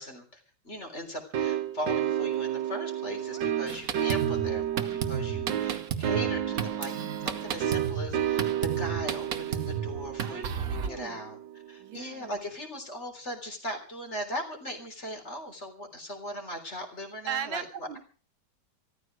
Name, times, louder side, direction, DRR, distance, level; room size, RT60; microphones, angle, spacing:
voice 1, 0.0-6.9 7.2-11.4 11.7-17.9, equal, 35° left, 4 dB, 4.0 m, -39 dB
sound 1, 1.3-11.8, right 10 dB, 70° right, 1.7 m, -31 dB
voice 2, 3.3-3.7 10.2-11.2 11.8-12.4 17.3-18.0, right 9 dB, 90° right, 9 dB, 2.0 m, -38 dB
Drum kit, 3.7-10.9, right 7 dB, 50° right, 1.5 m, -33 dB
14.0 x 14.0 x 6.2 m, 0.40 s
omnidirectional pair, 2.1 m